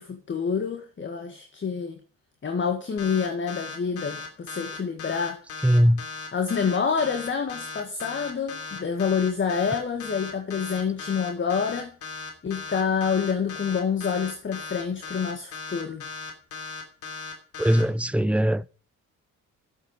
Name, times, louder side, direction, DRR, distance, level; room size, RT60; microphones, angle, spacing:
voice 1, 0.0-2.0 2.4-5.4 6.3-11.9 12.4-16.1, left 6 dB, 40° left, 1.9 m, -27 dB
sound 1, 3.0-17.8, left 4 dB, 75° left, 2.9 m, -37 dB
voice 2, 5.6-6.0 17.6-18.7, equal, 5° right, 0.4 m, -20 dB
8.5 x 8.4 x 8.0 m
cardioid pair, 90°, 30 cm